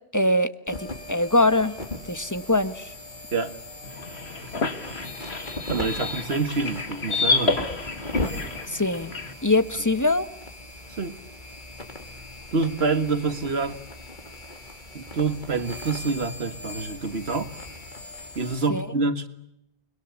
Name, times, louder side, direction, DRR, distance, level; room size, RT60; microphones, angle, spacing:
voice 1, 0.1-1.7 2.1-2.9 8.7-9.1 9.4-10.3 18.7-18.9, left 2 dB, 20° left, 12 dB, 1.2 m, -23 dB
sound 1, 0.7-18.7, left 2 dB, 50° left, 3.4 m, -38 dB
sound 2, 3.8-9.3, left 3 dB, 80° left, 2.2 m, -29 dB
voice 2, 5.7-7.6 11.0-11.2 12.5-13.8 14.9-17.5 18.4-19.3, right 4 dB, 75° right, 11 dB, 2.0 m, -26 dB
29.5 x 22.0 x 8.3 m, 0.79 s
omnidirectional pair, 1.1 m